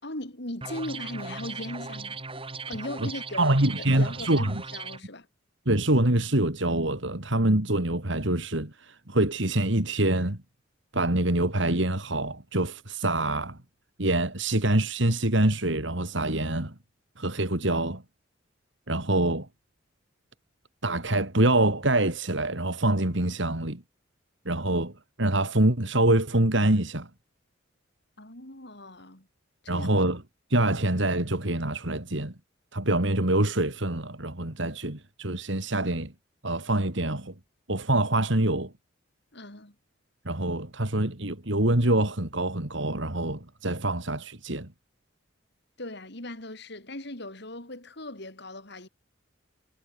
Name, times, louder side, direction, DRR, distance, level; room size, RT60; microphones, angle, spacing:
voice 1, 0.0-2.2 2.7-5.3 28.2-29.3 29.6-29.9 39.3-39.7 45.8-48.9, left 1 dB, 55° left, 4.5 m, -38 dB
sound 1, 0.6-5.0, right 4 dB, 25° right, 4.2 m, -38 dB
voice 2, 3.4-4.6 5.7-10.4 10.9-13.6 14.0-16.7 17.2-18.0 18.9-19.5 20.8-23.8 24.4-24.9 25.2-27.1 29.7-30.2 30.5-32.3 32.7-36.1 36.4-37.3 37.7-38.7 40.2-44.7, right 1 dB, 65° right, 2.9 m, -25 dB
head